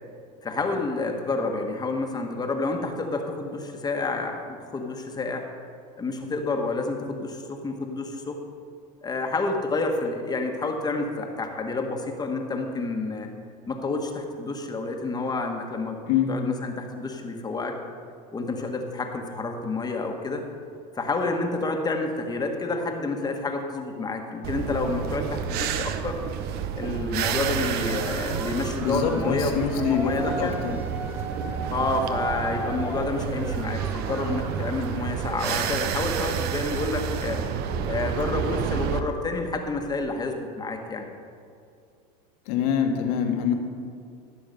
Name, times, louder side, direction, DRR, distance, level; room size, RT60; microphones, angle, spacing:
voice 1, 0.4-5.5 6.0-8.4 9.0-13.3 13.7-16.0 16.3-17.8 18.3-20.4 20.9-26.2 26.7-30.5 31.7-37.4 37.9-41.0, left 3 dB, 20° left, 3 dB, 1.4 m, -29 dB
sound 1, 24.4-39.0, right 7 dB, 55° right, 0.9 m, -30 dB
sound 2, 27.9-35.1, right 1 dB, 10° right, 0.8 m, -37 dB
voice 2, 28.8-30.8 42.5-43.5, left 8 dB, 75° left, 4 dB, 1.7 m, -25 dB
15.5 x 7.0 x 5.3 m, 2.4 s
supercardioid pair, 115°, 19 cm